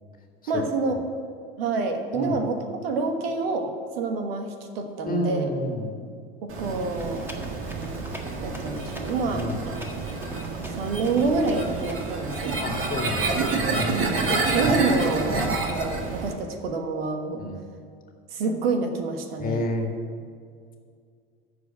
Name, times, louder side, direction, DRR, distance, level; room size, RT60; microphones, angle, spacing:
voice 1, 0.5-1.0 1.6-5.5 6.4-7.4 8.4-9.8 10.6-12.6 13.9-17.4 18.3-19.7, right 3 dB, 75° right, 5 dB, 1.4 m, -28 dB
voice 2, 5.0-6.0 9.3-9.6 12.6-13.5 13.7-14.0 17.4-17.6 19.4-19.9, left 1 dB, 30° left, 2 dB, 2.0 m, -29 dB
sound 1, 6.5-16.3, right 3 dB, 45° right, 2.1 m, -28 dB
Run, 6.9-12.2, equal, 5° right, 1.7 m, -41 dB
14.0 x 4.8 x 8.7 m, 2.2 s
hypercardioid pair, 80°, 30 cm